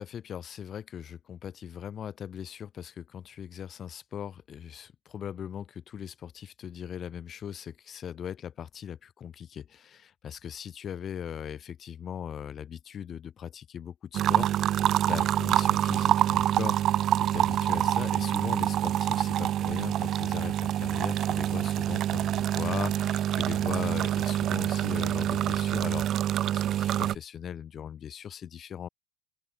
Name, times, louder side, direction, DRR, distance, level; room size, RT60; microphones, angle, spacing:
voice 1, 0.0-14.8 15.1-26.1 26.5-28.9, left 9 dB, 35° left, 2.7 m, -39 dB
sound 1, 14.1-27.2, right 11 dB, 45° right, 1.1 m, -26 dB
open air
supercardioid pair, 125°, 0 cm